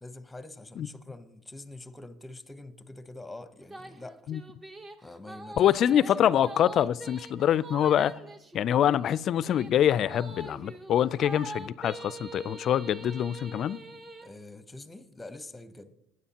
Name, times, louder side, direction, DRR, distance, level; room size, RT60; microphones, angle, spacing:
voice 1, 0.0-4.3 5.0-5.7 6.1-6.2 14.2-15.9, left 2 dB, 10° left, 0.8 m, -45 dB
sound 1, 3.6-14.3, right 2 dB, 30° right, 0.9 m, -44 dB
voice 2, 5.6-8.2 8.5-13.8, left 10 dB, 50° left, 0.3 m, -25 dB
15.5 x 9.4 x 2.9 m
supercardioid pair, 95°, 0 cm